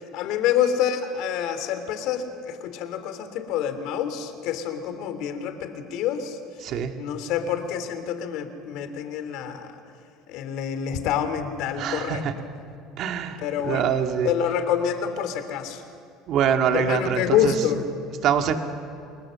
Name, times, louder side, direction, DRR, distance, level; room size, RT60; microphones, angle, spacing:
voice 1, 0.1-6.4 7.0-9.8 10.3-12.5 13.4-14.0 14.2-15.8 16.7-17.8, left 9 dB, 70° left, 9 dB, 3.0 m, -27 dB
voice 2, 11.8-12.2 13.0-13.4 13.6-14.3 16.3-17.5 18.2-18.6, right 8 dB, 60° right, 4 dB, 2.3 m, -24 dB
29.0 x 20.5 x 7.7 m, 2.3 s
supercardioid pair, 90°, 0 cm